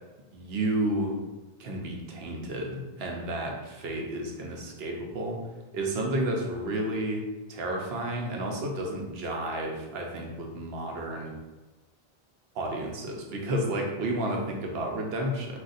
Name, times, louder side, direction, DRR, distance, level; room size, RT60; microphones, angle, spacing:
voice 1, 0.3-1.2 1.6-5.4 5.7-7.2 7.5-11.3 12.5-15.6, right 1 dB, 75° right, 1 dB, 0.9 m, -31 dB
3.9 x 2.4 x 2.5 m, 1.1 s
omnidirectional pair, 1.0 m